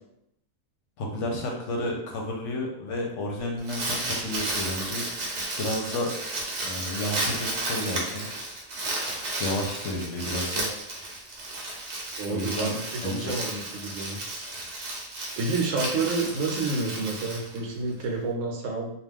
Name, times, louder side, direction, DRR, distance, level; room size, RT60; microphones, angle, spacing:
voice 1, 1.0-5.0 5.6-6.2 6.6-8.3 9.4-10.7 12.3-13.3, left 1 dB, 70° left, 0 dB, 0.9 m, -31 dB
Crumpling crinkling, 3.4-18.0, right 2 dB, 50° right, 0.5 m, -33 dB
voice 2, 12.2-14.2 15.4-18.9, right 3 dB, 75° right, 1 dB, 1.0 m, -29 dB
2.3 x 2.2 x 3.4 m, 0.78 s
omnidirectional pair, 1.4 m